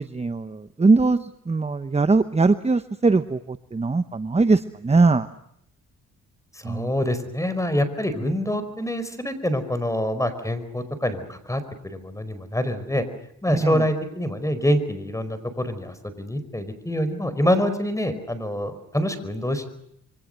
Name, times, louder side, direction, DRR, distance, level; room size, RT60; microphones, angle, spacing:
voice 1, 0.0-5.3 6.6-6.9 8.2-8.3 13.5-13.8, right 3 dB, 20° right, 11 dB, 1.0 m, -21 dB
voice 2, 6.5-13.1 13.4-19.7, left 1 dB, 10° left, 12 dB, 4.7 m, -26 dB
27.0 x 24.5 x 6.6 m, 0.73 s
cardioid pair, 80°, 33 cm